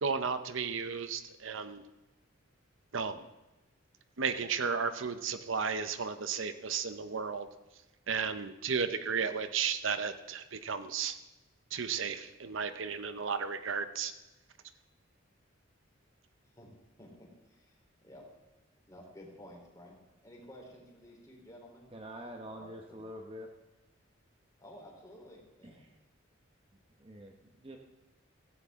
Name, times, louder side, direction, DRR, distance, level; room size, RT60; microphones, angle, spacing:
voice 1, 0.0-1.8 2.9-3.2 4.2-7.5 8.1-11.1 11.7-14.1, right 6 dB, 70° right, 10 dB, 0.8 m, -34 dB
voice 2, 17.0-18.2 18.9-21.9 22.6-23.0 24.6-25.9, equal, 15° left, -1 dB, 3.6 m, -53 dB
voice 3, 21.9-23.5 25.6-25.9 27.0-27.8, equal, 25° right, 2 dB, 1.0 m, -46 dB
16.0 x 15.5 x 3.7 m, 1.1 s
head